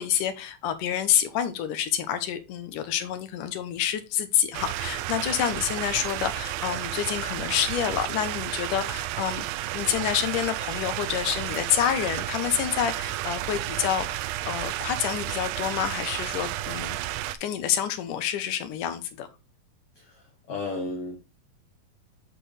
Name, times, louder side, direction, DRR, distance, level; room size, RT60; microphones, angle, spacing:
voice 1, 0.0-9.5 9.7-17.0 17.4-19.3, left 10 dB, 70° left, 2.3 m, -28 dB
sound 1, 4.5-17.4, right 15 dB, 85° right, 2.3 m, -32 dB
voice 2, 19.9-21.2, left 3 dB, 55° left, 1.8 m, -34 dB
10.0 x 4.5 x 3.2 m
omnidirectional pair, 4.1 m